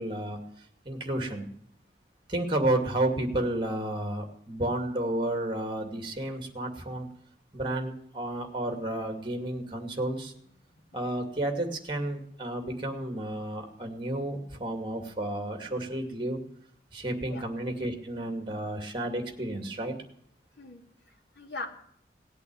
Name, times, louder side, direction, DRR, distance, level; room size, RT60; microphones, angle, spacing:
voice 1, 0.0-1.5 2.3-7.1 7.5-10.3 10.9-16.4 16.9-19.9, right 1 dB, 30° right, 5 dB, 2.5 m, -31 dB
voice 2, 20.6-21.7, left 3 dB, 75° left, 4 dB, 2.7 m, -41 dB
18.0 x 8.3 x 9.0 m, 0.66 s
head